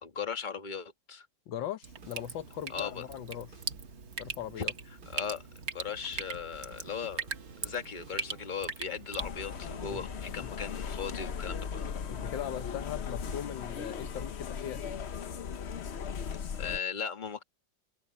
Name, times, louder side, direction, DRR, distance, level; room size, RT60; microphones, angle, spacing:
voice 1, 0.0-1.3 2.7-3.1 4.6-4.7 5.1-5.5 5.7-7.3 7.6-11.8 16.6-17.4, left 6 dB, 25° left, 1.7 m, -38 dB
voice 2, 1.5-3.6 4.2-4.7 9.9-10.0 10.4-10.5 12.1-14.8, left 11 dB, 85° left, 1.7 m, -39 dB
Drip, 1.8-9.3, right 5 dB, 40° right, 1.4 m, -40 dB
sound 1, 2.0-14.4, right 4 dB, 60° right, 2.5 m, -53 dB
sound 2, 9.2-16.8, left 7 dB, 50° left, 0.9 m, -38 dB
omnidirectional pair, 2.0 m